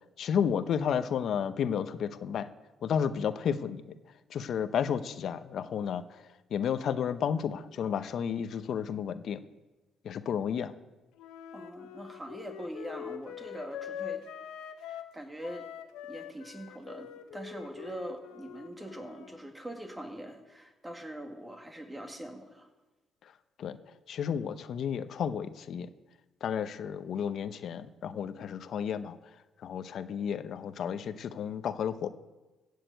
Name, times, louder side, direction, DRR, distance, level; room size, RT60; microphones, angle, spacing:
voice 1, 0.2-2.5 2.8-3.8 4.3-6.2 6.5-9.4 10.0-10.7 23.6-23.8 24.1-25.9 26.4-29.2 29.6-32.1, left 8 dB, 60° left, 12 dB, 0.8 m, -32 dB
Wind instrument woodwind instrument, 11.2-15.1 15.4-19.4, left 10 dB, 85° left, 0.9 m, -44 dB
voice 2, 11.5-14.2 14.9-15.7 16.0-22.7, right 1 dB, 15° right, 5 dB, 1.9 m, -42 dB
16.0 x 6.7 x 8.1 m, 1.1 s
cardioid pair, 90°, 0 cm